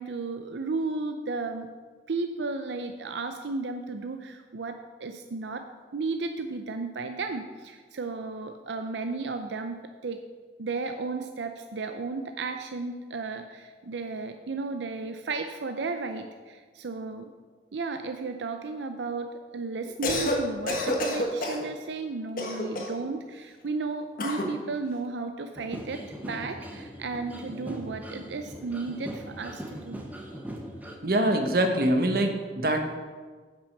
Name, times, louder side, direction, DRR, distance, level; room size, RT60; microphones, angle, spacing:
voice 1, 0.0-1.7 2.1-5.7 5.9-9.8 10.0-10.2 10.6-17.3 17.7-30.0, right 3 dB, 90° right, 6 dB, 0.6 m, -34 dB
Cough, 19.9-20.4 20.7-21.7 22.4-23.0 24.2-24.5, left 1 dB, 50° left, 1.3 m, -28 dB
sound 1, 25.5-31.0, equal, 10° right, 0.9 m, -40 dB
voice 2, 31.0-32.8, right 1 dB, 55° right, 5 dB, 1.1 m, -24 dB
8.5 x 6.1 x 6.5 m, 1.5 s
head